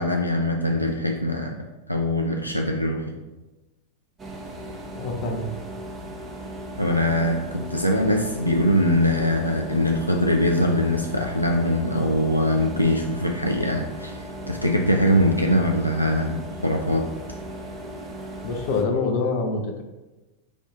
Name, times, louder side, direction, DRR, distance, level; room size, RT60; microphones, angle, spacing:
voice 1, 0.0-1.5 1.9-3.1 6.8-17.1, left 1 dB, 90° left, 1 dB, 0.4 m, -22 dB
sound 1, 4.2-18.8, right 1 dB, 20° right, 0.8 m, -37 dB
voice 2, 4.9-5.5 18.4-19.8, left 3 dB, 50° left, 3 dB, 0.7 m, -25 dB
5.2 x 2.6 x 3.8 m, 1.1 s
figure-of-eight pair, 90°, 0 cm